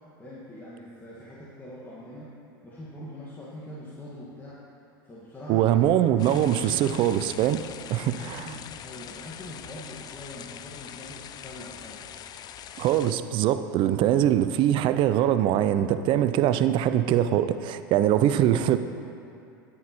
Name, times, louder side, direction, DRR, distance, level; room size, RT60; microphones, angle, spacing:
voice 1, 0.2-2.3 2.6-4.6 5.0-7.1 8.0-12.1, left 1 dB, 15° left, -8 dB, 1.5 m, -42 dB
voice 2, 5.5-7.6 7.9-8.4 12.8-18.8, right 11 dB, 45° right, 11 dB, 0.4 m, -22 dB
sound 1, 6.2-13.1, left 9 dB, 35° left, 0.4 m, -43 dB
9.5 x 9.4 x 2.9 m, 2.6 s
hypercardioid pair, 90°, 11 cm